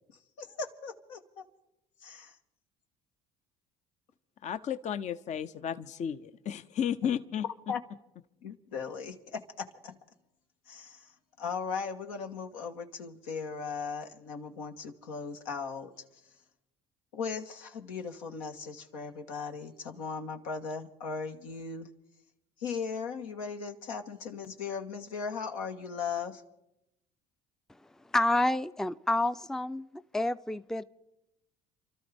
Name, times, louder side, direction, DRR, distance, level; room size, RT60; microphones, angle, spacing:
voice 1, 0.4-1.4 2.0-2.4 7.7-7.8 8.4-10.0 10.7-11.1 11.4-16.3 17.1-21.9 22.6-26.4, left 5 dB, 85° left, 4 dB, 1.4 m, -38 dB
voice 2, 4.4-7.4, left 8 dB, 45° left, 12 dB, 0.6 m, -33 dB
voice 3, 28.1-29.9 30.1-30.8, left 1 dB, 5° left, 14 dB, 0.5 m, -28 dB
28.5 x 13.0 x 3.5 m, 0.87 s
hypercardioid pair, 70°, 17 cm